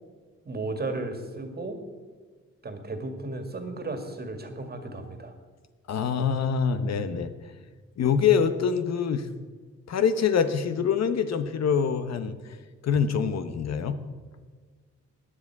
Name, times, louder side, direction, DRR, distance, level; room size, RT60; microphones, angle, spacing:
voice 1, 0.4-1.8 2.6-5.3, right 2 dB, 35° right, 6 dB, 2.0 m, -34 dB
voice 2, 5.9-7.3 8.0-9.3 9.9-12.4 12.8-14.0, left 7 dB, 60° left, 10 dB, 1.0 m, -25 dB
17.0 x 10.0 x 4.7 m, 1.5 s
cardioid pair, 90°, 29 cm